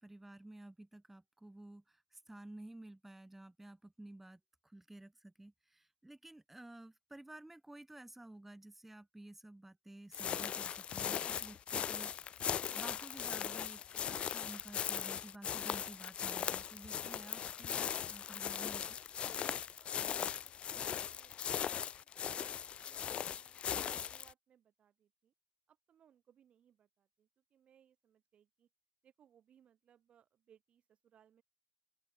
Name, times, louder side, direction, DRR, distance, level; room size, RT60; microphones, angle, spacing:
voice 1, 0.0-12.3 12.7-19.0, right 1 dB, 10° right, 5.0 m, -53 dB
sound 1, 10.1-24.3, left 9 dB, 55° left, 0.7 m, -39 dB
voice 2, 19.7-25.3 25.7-28.7 29.0-31.4, right 9 dB, 55° right, 3.7 m, -70 dB
open air
cardioid pair, 90°, 2 cm